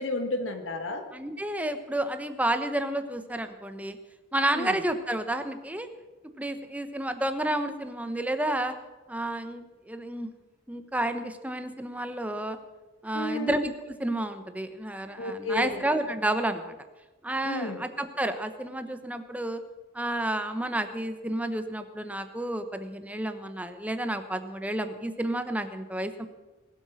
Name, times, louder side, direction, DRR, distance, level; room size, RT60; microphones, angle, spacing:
voice 1, 0.0-1.0 4.5-4.7 13.1-13.5 15.2-15.8 17.4-17.8, left 2 dB, 90° left, 5 dB, 1.5 m, -32 dB
voice 2, 1.1-4.0 4.3-5.9 6.4-8.7 9.1-10.3 10.7-12.6 13.0-16.8 17.2-19.6 19.9-26.3, right 1 dB, 10° right, 8 dB, 0.9 m, -30 dB
20.0 x 8.2 x 6.3 m, 1.2 s
head